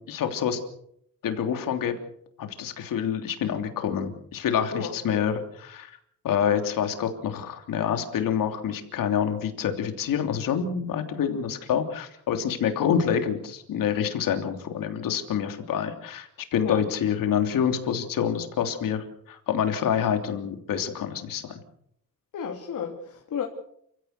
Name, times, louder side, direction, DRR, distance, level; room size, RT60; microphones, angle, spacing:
voice 1, 0.1-0.6 1.2-2.0 2.4-5.9 6.2-21.5, left 8 dB, 80° left, 6 dB, 3.3 m, -27 dB
voice 2, 4.7-5.3 16.6-16.8 22.3-23.4, left 7 dB, 65° left, 2 dB, 3.0 m, -33 dB
29.0 x 16.5 x 6.8 m, 0.70 s
cardioid pair, 140°, 33 cm